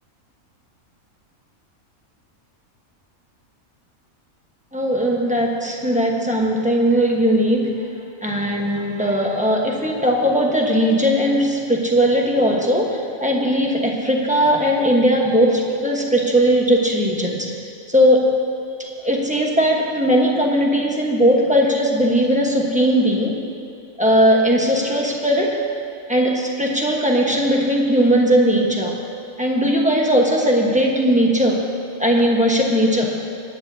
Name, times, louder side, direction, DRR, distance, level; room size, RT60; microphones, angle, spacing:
voice 1, 4.7-7.9 8.2-17.6 17.9-18.5 18.8-23.4 24.0-25.6 26.1-29.0 29.4-31.7 32.0-33.3, equal, 5° right, -1 dB, 1.1 m, -18 dB
22.5 x 10.0 x 2.8 m, 2.7 s
omnidirectional pair, 1.5 m